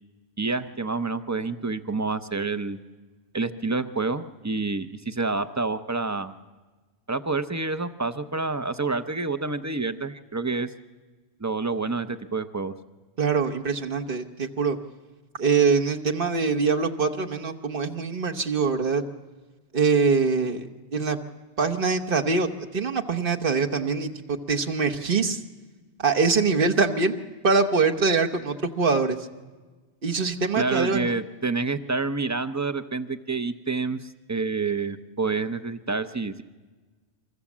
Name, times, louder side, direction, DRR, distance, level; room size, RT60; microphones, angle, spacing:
voice 1, 0.4-2.8 3.3-6.3 7.1-10.7 11.4-12.7 30.6-36.4, right 3 dB, 20° right, 11 dB, 0.6 m, -28 dB
voice 2, 13.2-14.8 15.4-19.0 19.7-21.2 21.6-25.4 26.0-27.2 27.4-29.2 30.0-31.1, right 4 dB, 55° right, 4 dB, 1.3 m, -23 dB
24.5 x 21.5 x 7.3 m, 1.3 s
omnidirectional pair, 1.1 m